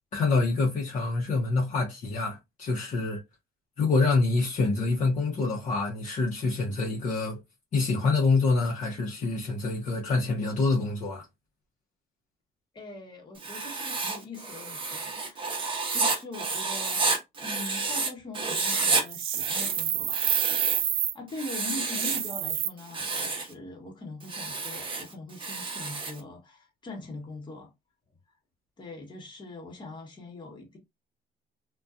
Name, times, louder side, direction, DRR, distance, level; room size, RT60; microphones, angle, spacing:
voice 1, 0.1-3.2 3.8-7.4 7.7-11.2, left 3 dB, 45° left, 0.8 m, -26 dB
voice 2, 12.7-17.1 17.4-20.3 20.8-27.7 28.8-30.8, left 2 dB, 25° left, 1.0 m, -42 dB
Writing, 13.4-18.1 18.3-19.0 19.3-20.9 21.3-22.3 22.8-23.5 24.2-26.2, right 4 dB, 30° right, 0.7 m, -30 dB
sound 1, 19.1-21.1 21.8-22.7, right 11 dB, 60° right, 0.4 m, -28 dB
2.5 x 2.3 x 2.3 m
cardioid pair, 110°, 17 cm